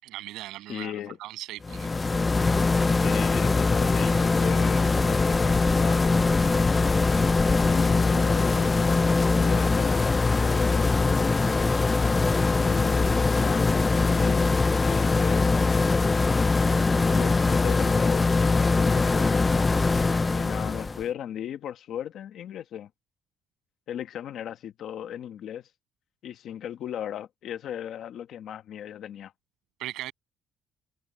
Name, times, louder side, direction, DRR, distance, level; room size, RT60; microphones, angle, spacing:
voice 1, 0.0-0.9 1.2-1.9 29.8-30.1, right 16 dB, 80° right, 7.5 m, -38 dB
voice 2, 0.7-1.2 3.0-6.1 6.5-6.9 7.7-11.4 12.6-15.6 17.1-19.4 20.3-22.9 23.9-25.7 26.2-29.3, left 10 dB, 50° left, 1.2 m, -37 dB
sound 1, 1.6-21.0, left 3 dB, 15° left, 0.3 m, -22 dB
cardioid pair, 180°, 0 cm